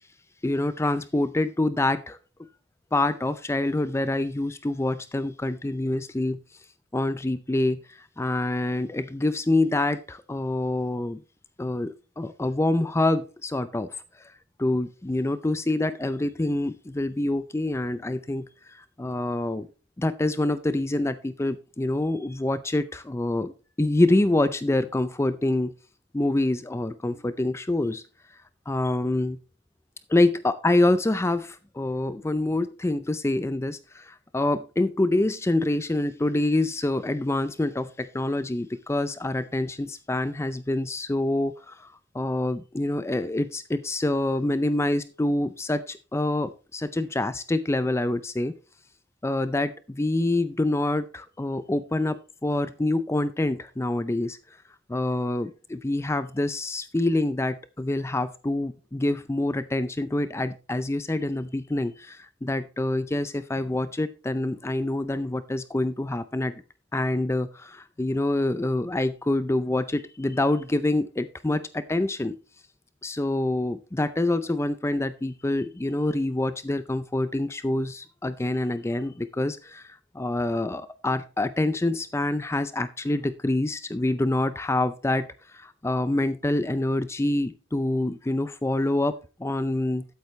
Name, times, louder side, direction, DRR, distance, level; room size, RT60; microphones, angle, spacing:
voice 1, 0.4-2.2 2.9-6.4 6.9-11.2 11.6-13.9 14.2-14.3 14.6-19.7 20.0-23.5 23.8-25.7 26.1-28.0 28.7-29.4 30.1-48.6 49.2-54.4 54.9-66.6 66.9-72.4 73.0-90.1, left 2 dB, 15° left, 13 dB, 0.5 m, -26 dB
12.5 x 8.2 x 3.2 m, 0.34 s
head